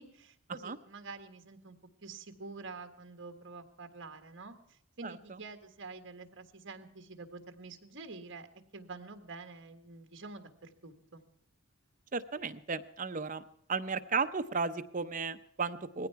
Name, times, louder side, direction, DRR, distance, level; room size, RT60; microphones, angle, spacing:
voice 1, 0.0-8.5 8.7-11.2, right 3 dB, 55° right, 7 dB, 1.5 m, -47 dB
voice 2, 12.1-13.4 13.7-16.1, right 4 dB, 35° right, 8 dB, 0.6 m, -34 dB
19.0 x 15.5 x 4.6 m, 0.71 s
head